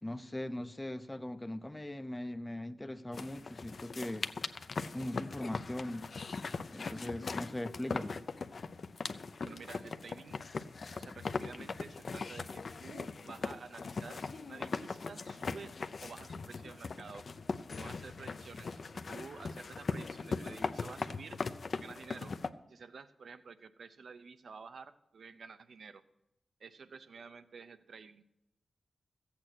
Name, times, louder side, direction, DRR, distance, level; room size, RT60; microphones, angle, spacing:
voice 1, 0.0-4.3 4.9-6.1 6.7-8.2, left 1 dB, 15° left, 0.6 m, -40 dB
sound 1, 3.1-22.5, left 4 dB, 60° left, 0.6 m, -40 dB
voice 2, 9.4-10.4 10.9-17.3 17.8-21.4 21.8-22.4 22.7-26.0 26.6-28.2, right 5 dB, 80° right, 0.7 m, -51 dB
14.5 x 8.5 x 6.1 m
wide cardioid pair, 85°, 0 cm